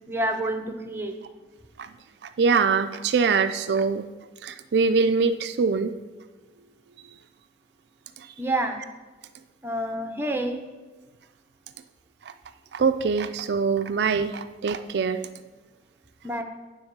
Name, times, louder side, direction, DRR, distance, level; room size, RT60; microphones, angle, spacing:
voice 1, 0.1-1.1 8.4-8.8 9.6-10.6 16.2-16.4, right 1 dB, 10° right, 5 dB, 0.7 m, -28 dB
voice 2, 2.2-4.0 4.4-5.9 8.2-8.3 12.7-15.2, right 5 dB, 70° right, 10 dB, 0.4 m, -23 dB
9.8 x 3.9 x 6.6 m, 1.3 s
head